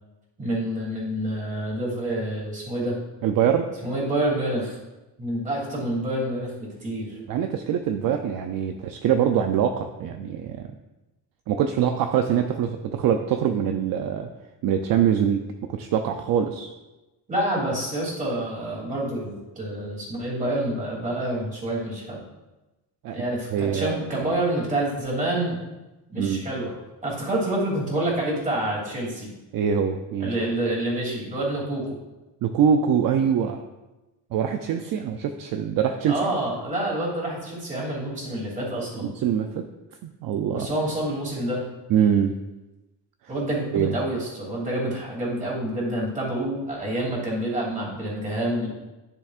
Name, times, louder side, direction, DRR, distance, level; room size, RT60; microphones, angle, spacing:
voice 1, 0.4-3.0 3.8-4.8 5.2-7.2 17.3-22.2 23.1-25.6 26.1-26.7 27.0-29.3 30.2-31.9 36.1-39.1 40.5-41.6 43.3-48.7, right 1 dB, 20° right, -4 dB, 2.9 m, -27 dB
voice 2, 3.2-3.7 7.3-10.7 11.5-14.3 14.6-16.7 23.0-23.2 23.5-24.3 26.2-26.5 29.5-30.3 32.4-33.6 34.3-36.2 39.0-39.7 40.0-40.7 41.9-42.4 43.7-43.9, right 8 dB, 55° right, 6 dB, 0.6 m, -24 dB
10.5 x 7.0 x 2.5 m, 1.1 s
cardioid pair, 150°, 42 cm